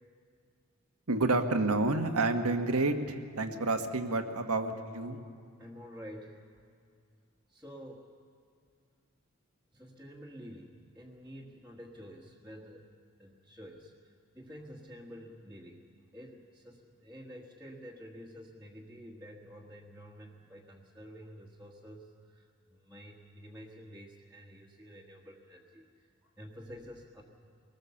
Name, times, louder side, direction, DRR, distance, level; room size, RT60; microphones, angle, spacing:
voice 1, 1.1-5.2, right 2 dB, 85° right, 6 dB, 1.5 m, -29 dB
voice 2, 5.6-6.5 7.5-8.0 9.7-12.9 13.2-15.8 16.1-22.4 22.7-25.9 26.2-27.2, equal, 5° right, -5 dB, 1.5 m, -49 dB
23.0 x 19.5 x 7.1 m, 2.2 s
head